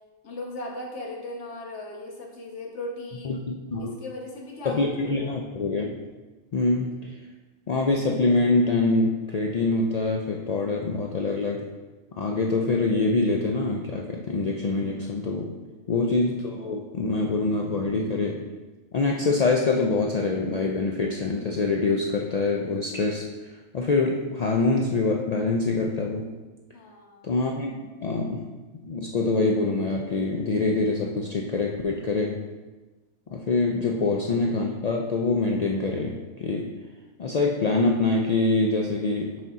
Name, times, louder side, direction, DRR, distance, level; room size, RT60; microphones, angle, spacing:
voice 1, 0.2-3.4 3.8-5.5 15.5-15.9 26.7-27.3 33.9-34.0, left 2 dB, 75° left, 0 dB, 1.3 m, -38 dB
voice 2, 3.2-4.0 4.6-6.0 6.5-7.2 7.7-11.7 12.2-15.5 15.9-18.5 18.9-23.3 23.7-26.3 27.2-27.7 28.0-28.4 28.9-32.5 33.3-36.7 37.2-39.4, left 3 dB, 55° left, 0 dB, 0.4 m, -25 dB
6.4 x 4.2 x 3.6 m, 1.2 s
omnidirectional pair, 1.2 m